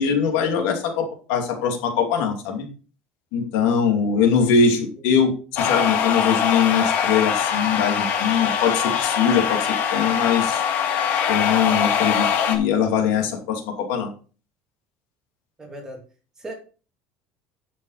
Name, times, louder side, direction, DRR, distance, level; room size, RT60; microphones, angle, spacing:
voice 1, 0.0-2.7 3.3-10.6 11.3-14.1, left 6 dB, 75° left, 3 dB, 2.7 m, -22 dB
sound 1, 5.6-12.6, left 8 dB, 50° left, 2.0 m, -22 dB
voice 2, 15.6-16.0 16.4-16.5, right 1 dB, 15° right, 1 dB, 2.8 m, -38 dB
12.0 x 6.2 x 4.1 m, 0.37 s
cardioid pair, 155°, 4 cm